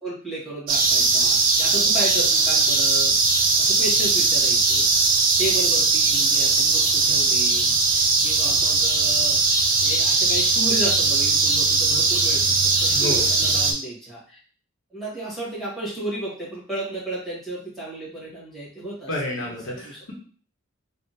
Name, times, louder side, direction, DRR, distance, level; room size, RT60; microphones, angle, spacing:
voice 1, 0.0-4.9 5.4-14.4 14.9-19.1 19.5-20.0, right 2 dB, ahead, -8 dB, 1.4 m, -33 dB
sound 1, 0.7-13.7, right 3 dB, 50° right, 0.6 m, -20 dB
voice 2, 12.9-13.3 19.1-20.1, left 1 dB, 75° left, -2 dB, 0.9 m, -30 dB
3.6 x 2.1 x 2.7 m, 0.43 s
head